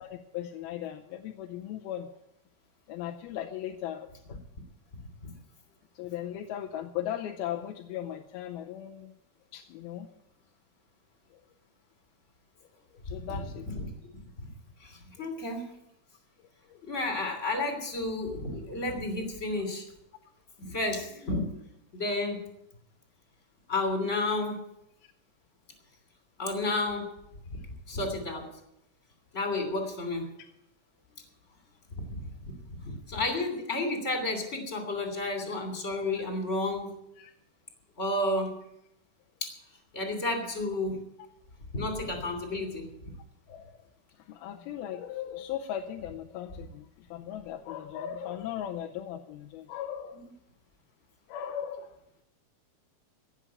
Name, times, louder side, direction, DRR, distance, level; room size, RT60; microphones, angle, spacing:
voice 1, 0.0-2.1 2.9-4.1 6.0-9.1 9.5-10.1 11.3-11.4 13.1-13.7 16.7-16.8 37.2-37.3 43.5-43.8 44.2-50.2 51.3-52.0, left 10 dB, 90° left, 2 dB, 2.6 m, -37 dB
voice 2, 14.8-15.7 16.8-19.8 20.6-21.5 21.9-22.4 23.7-24.6 26.4-27.1 27.9-28.4 29.3-30.3 32.0-32.1 32.4-36.9 38.0-38.5 39.4-39.5 39.9-41.0 41.7-42.9, left 2 dB, 20° left, 4 dB, 2.7 m, -31 dB
17.0 x 7.2 x 8.6 m, 0.83 s
omnidirectional pair, 4.3 m